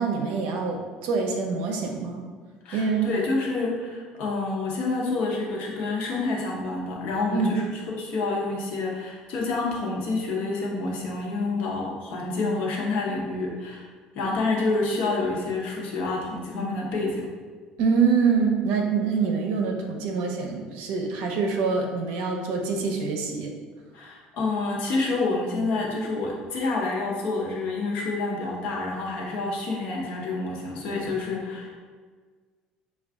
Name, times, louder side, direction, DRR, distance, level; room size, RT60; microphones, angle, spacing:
voice 1, 0.0-2.2 2.7-3.1 7.3-7.5 17.8-23.5, right 5 dB, 70° right, 2 dB, 0.6 m, -25 dB
voice 2, 2.6-13.9 14.1-17.3 23.9-31.8, left 3 dB, 55° left, -2 dB, 0.7 m, -28 dB
5.7 x 2.3 x 3.5 m, 1.5 s
cardioid pair, 175°, 3 cm